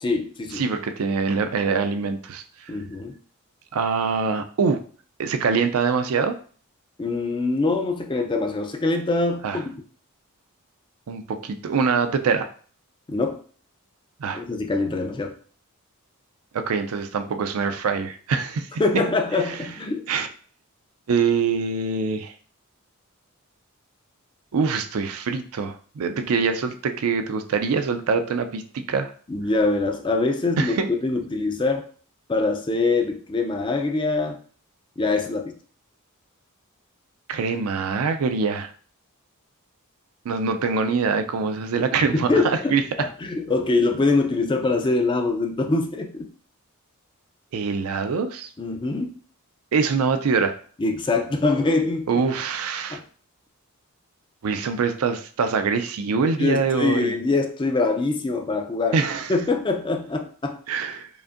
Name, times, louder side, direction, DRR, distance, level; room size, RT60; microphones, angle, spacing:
voice 1, 0.0-0.6 2.7-3.1 7.0-9.8 13.1-13.4 14.3-15.3 18.8-20.1 29.3-30.7 31.0-31.8 32.3-34.4 35.0-35.5 42.1-46.3 48.6-49.1 50.8-52.2 52.9-53.0 56.4-59.0 59.3-60.6, left 3 dB, 20° left, 4 dB, 0.4 m, -24 dB
voice 2, 0.5-2.7 3.7-4.8 5.2-6.4 9.4-9.6 11.1-12.5 14.2-14.4 16.5-18.8 19.4-19.6 20.1-20.3 21.1-22.3 24.5-29.1 30.6-30.9 37.3-38.7 40.3-43.1 47.5-48.5 49.7-50.5 52.1-53.0 54.4-57.1 58.9-59.3 60.7-61.1, right 5 dB, 70° right, 8 dB, 0.4 m, -24 dB
4.9 x 2.6 x 2.5 m, 0.43 s
head